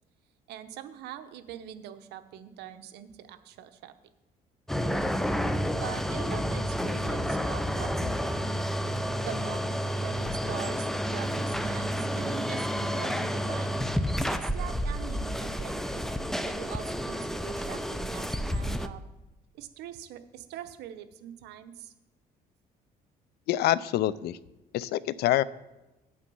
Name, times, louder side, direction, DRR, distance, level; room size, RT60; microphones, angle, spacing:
voice 1, 0.5-3.9 5.8-8.5 9.2-13.9 14.3-19.0 19.5-21.9, right 11 dB, 80° right, 10 dB, 0.8 m, -43 dB
sound 1, 4.7-18.9, equal, ahead, 0.5 m, -30 dB
voice 2, 23.5-24.4 24.7-25.4, left 14 dB, 70° left, 19 dB, 0.4 m, -26 dB
8.8 x 8.1 x 5.4 m, 1.0 s
cardioid pair, 110°, 17 cm